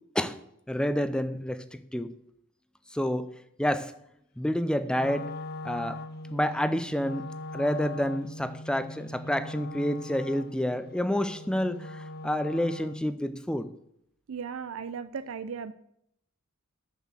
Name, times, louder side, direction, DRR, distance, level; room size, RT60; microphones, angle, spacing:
voice 1, 0.7-1.6 1.9-2.1 2.9-3.3 3.6-3.9 4.4-5.3 5.6-6.0 6.3-7.2 7.5-13.7, equal, 5° left, 11 dB, 0.5 m, -28 dB
Wind instrument woodwind instrument, 4.9-13.2, left 2 dB, 45° left, 0.7 m, -41 dB
voice 2, 14.3-15.7, right 6 dB, 65° right, 13 dB, 0.4 m, -36 dB
6.9 x 6.5 x 7.4 m, 0.75 s
head